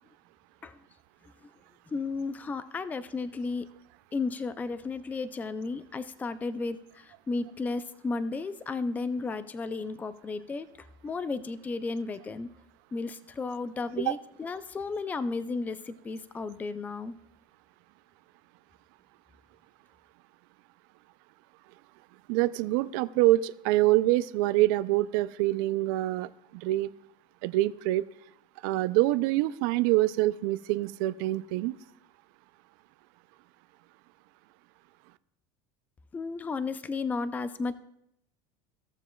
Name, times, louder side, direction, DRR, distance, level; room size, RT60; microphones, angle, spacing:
voice 1, 1.9-3.7 4.1-12.5 12.9-17.1 36.1-37.7, left 4 dB, 15° left, 14 dB, 0.4 m, -33 dB
voice 2, 22.3-26.9 27.4-28.0 28.6-31.7, right 17 dB, 70° right, 13 dB, 0.4 m, -25 dB
16.5 x 7.1 x 2.3 m, 0.80 s
supercardioid pair, 120°, 11 cm